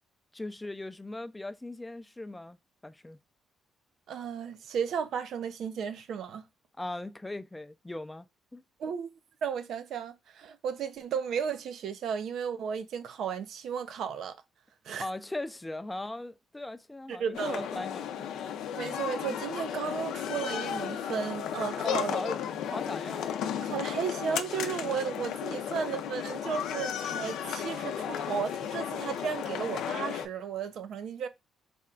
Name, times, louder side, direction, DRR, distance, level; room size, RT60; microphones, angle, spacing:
voice 1, 0.3-2.6 2.8-3.2 6.8-8.6 15.0-18.3 21.8-22.4 22.7-23.3, left 2 dB, 10° left, 0.4 m, -39 dB
voice 2, 4.1-6.5 8.8-9.1 9.4-14.4 14.8-15.1 17.1-17.7 18.8-22.2 23.6-31.3, right 7 dB, 70° right, 0.5 m, -34 dB
sound 1, 17.3-30.3, left 9 dB, 85° left, 0.5 m, -34 dB
4.2 x 2.3 x 3.7 m
cardioid pair, 90°, 0 cm